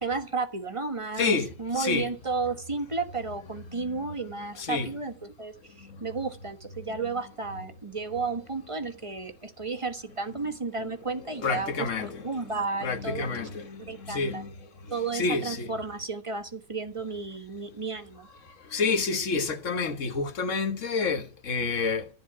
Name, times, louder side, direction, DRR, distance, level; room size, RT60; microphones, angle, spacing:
voice 1, 0.0-13.5 13.9-14.4 14.9-18.3, right 4 dB, 25° right, 1.3 m, -33 dB
voice 2, 1.2-1.5 1.8-2.1 3.7-3.9 4.6-4.9 10.8-10.9 11.4-12.2 12.8-14.5 15.1-15.7 18.7-22.1, left 4 dB, 65° left, 1.6 m, -28 dB
14.0 x 7.1 x 9.7 m
omnidirectional pair, 1.4 m